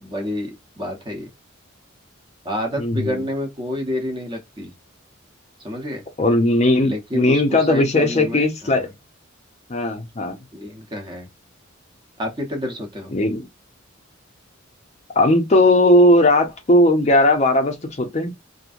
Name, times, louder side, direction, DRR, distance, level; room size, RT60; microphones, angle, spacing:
voice 1, 0.0-1.3 2.4-4.7 5.6-6.0 6.8-8.8 10.5-11.3 12.2-13.2, left 1 dB, 25° right, 0.9 m, -29 dB
voice 2, 2.8-3.2 6.2-8.9 9.7-10.4 13.1-13.5 15.1-18.3, left 1 dB, 35° left, 0.5 m, -17 dB
2.9 x 2.6 x 2.4 m
head